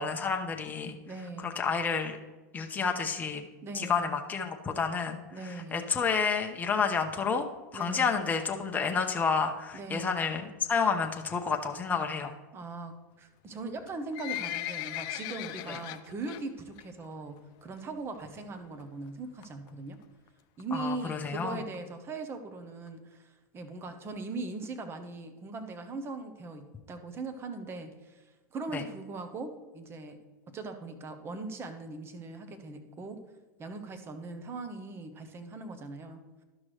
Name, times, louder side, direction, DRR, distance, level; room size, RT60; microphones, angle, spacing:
voice 1, 0.0-1.0 1.4-2.1 2.5-3.5 3.7-7.5 7.7-12.3 15.7-15.8 20.7-21.6 28.7-28.8, left 5 dB, 15° left, 3 dB, 0.8 m, -30 dB
voice 2, 1.1-1.6 3.6-4.2 5.3-5.9 7.7-8.2 9.7-10.3 12.5-20.0 20.6-28.3 28.5-33.2 33.6-36.2, right 3 dB, 25° right, 8 dB, 1.0 m, -40 dB
Livestock farm animals working animals, 13.8-16.4 16.8-17.1 17.4-17.5 18.1-18.2 18.5-18.6 18.8-18.9 19.4-19.7 20.3-20.4 20.6-20.7 20.9-21.0 21.2-21.3 21.7-21.8 22.3-22.4 22.9-23.0, left 14 dB, 45° left, 0.4 m, -37 dB
12.0 x 6.0 x 3.3 m, 1.2 s
hypercardioid pair, 120°, 10 cm